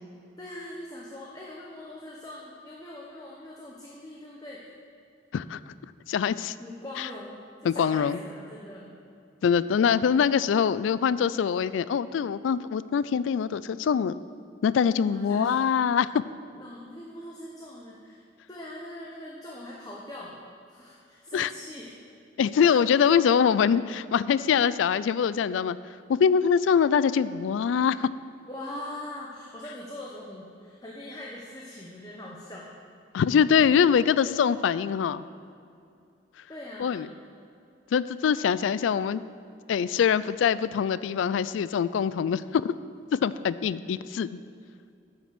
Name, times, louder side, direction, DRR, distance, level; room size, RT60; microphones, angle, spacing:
voice 1, 0.4-4.6 6.6-7.4 7.6-8.9 15.0-15.6 16.5-20.4 20.7-22.0 22.6-23.1 28.5-32.7 36.5-37.1, left 1 dB, 20° left, -4 dB, 0.9 m, -42 dB
voice 2, 6.1-6.5 7.0-7.1 7.6-8.2 9.4-14.1 14.6-16.2 21.3-21.5 22.4-25.8 26.1-28.1 33.1-35.3 36.8-37.1 37.9-39.2 39.7-42.8 43.1-44.3, left 7 dB, 85° left, 17 dB, 0.3 m, -23 dB
9.8 x 5.7 x 6.0 m, 2.5 s
head